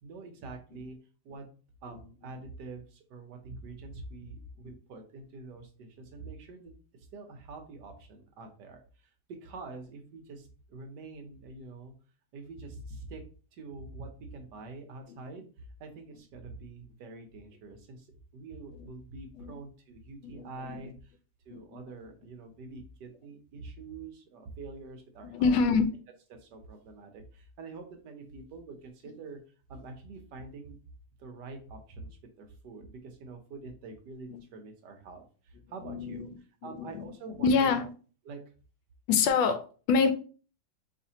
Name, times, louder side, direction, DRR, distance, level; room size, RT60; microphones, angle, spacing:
voice 1, 0.0-1.0 1.2-1.5 1.8-6.7 7.0-9.1 9.4-11.9 12.3-13.2 13.5-18.1 18.3-21.1 21.4-25.5 26.4-29.4 29.7-30.8 31.2-36.3 36.6-37.8 38.2-38.4, right 3 dB, 70° right, 1.3 m, -45 dB
voice 2, 20.2-20.9 21.5-21.9 25.2-25.8 34.3-34.4 35.8-36.3 36.6-37.0 37.4-37.9 39.1-40.1, left 5 dB, 85° left, 1.3 m, -27 dB
4.2 x 3.2 x 2.7 m
omnidirectional pair, 2.0 m